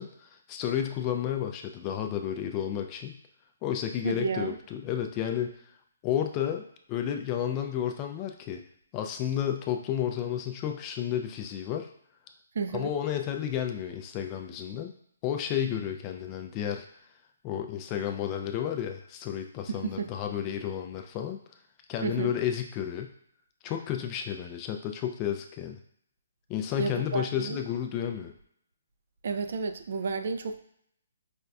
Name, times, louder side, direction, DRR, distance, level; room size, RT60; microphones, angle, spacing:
voice 1, 0.0-3.2 3.6-5.5 6.0-8.6 8.9-11.9 12.7-14.9 15.2-16.9 17.4-21.4 21.9-23.1 23.6-25.8 26.5-28.3, left 10 dB, 25° left, 5 dB, 0.3 m, -31 dB
voice 2, 4.0-4.6 12.5-12.9 19.7-20.1 22.0-22.4 26.8-27.6 29.2-30.6, right 4 dB, 60° right, 8 dB, 0.3 m, -32 dB
5.0 x 2.3 x 2.3 m, 0.69 s
hypercardioid pair, 150°, 0 cm